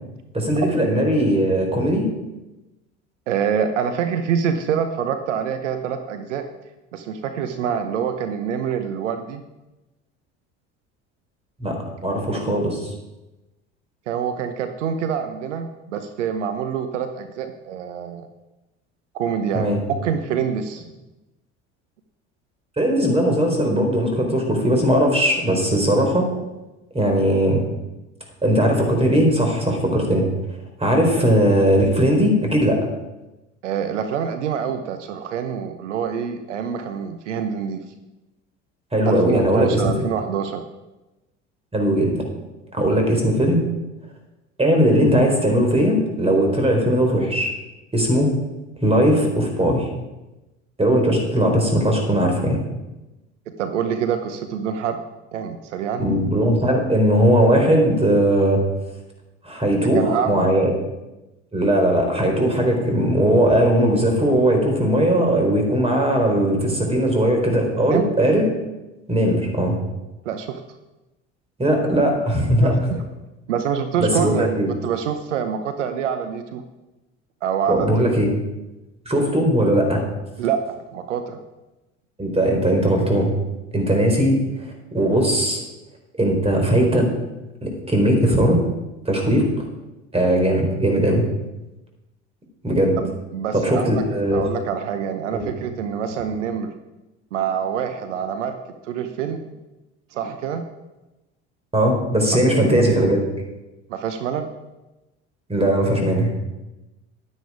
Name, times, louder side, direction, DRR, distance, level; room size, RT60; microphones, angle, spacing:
voice 1, 0.3-2.1 11.6-12.9 19.5-19.8 22.8-26.3 26.9-27.6 28.4-30.2 30.8-32.8 38.9-40.1 41.7-42.2 42.7-43.6 44.6-47.5 47.9-48.3 48.8-49.9 50.8-52.6 56.0-58.6 59.4-60.7 61.5-68.5 69.1-69.7 71.6-72.8 74.0-74.7 77.7-78.3 79.1-80.0 82.2-83.3 83.7-84.3 84.9-85.6 86.2-87.1 87.6-88.6 89.0-89.4 90.1-91.2 92.6-93.0 93.5-94.4 95.3-95.5 101.7-103.2 105.5-106.4, right 1 dB, 15° right, 2 dB, 4.2 m, -19 dB
voice 2, 3.3-6.4 6.9-9.4 12.3-12.5 14.1-18.3 19.1-19.7 20.0-20.8 33.6-37.8 39.1-40.6 53.6-55.0 55.3-56.0 59.8-60.5 67.9-68.0 70.2-70.6 72.6-73.0 73.5-76.6 77.4-77.9 80.4-81.4 93.0-94.0 94.3-96.7 97.3-98.6 98.8-99.5 100.1-100.7 102.4-102.5 103.9-104.5, right 7 dB, 85° right, 8 dB, 0.9 m, -26 dB
11.5 x 9.6 x 4.9 m, 1.0 s
hypercardioid pair, 70°, 35 cm